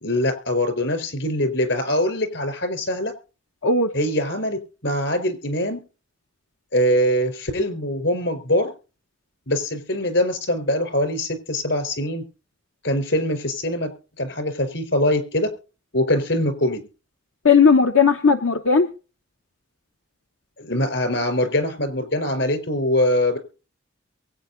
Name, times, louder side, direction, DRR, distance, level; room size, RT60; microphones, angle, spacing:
voice 1, 0.0-3.1 3.9-5.8 6.7-8.7 9.5-12.2 12.8-13.9 14.2-15.5 15.9-16.9 20.6-23.4, left 1 dB, 65° left, 10 dB, 4.3 m, -23 dB
voice 2, 17.4-18.9, left 5 dB, 90° left, 6 dB, 1.1 m, -16 dB
23.0 x 9.0 x 4.0 m, 0.35 s
head